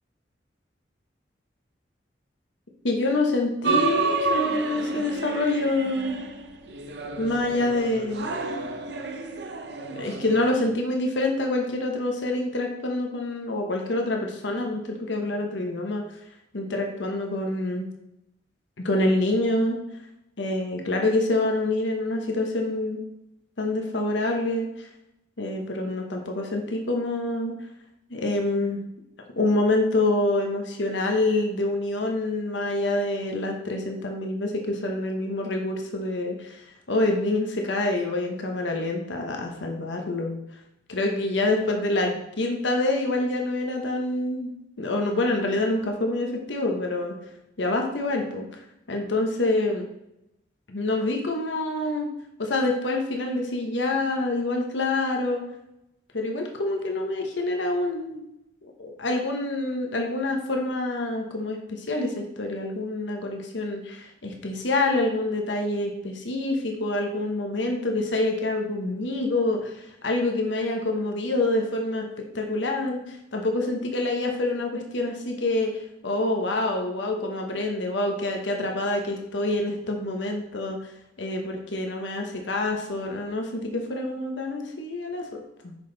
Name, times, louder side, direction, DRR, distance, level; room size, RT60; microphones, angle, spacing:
voice 1, 2.8-6.2 7.2-8.3 10.0-16.0 16.5-17.9 18.8-19.8 20.4-23.0 23.6-24.9 25.4-27.5 28.1-28.8 29.4-40.4 40.9-44.5 44.8-47.1 47.6-48.4 48.9-49.9 50.7-52.1 52.4-55.4 56.1-58.2 58.6-72.1 72.3-80.8 81.2-85.7, left 2 dB, 80° left, 2 dB, 1.1 m, -26 dB
sound 1, 3.6-10.7, right 3 dB, 65° right, 0.6 m, -30 dB
6.5 x 5.3 x 4.0 m, 0.86 s
head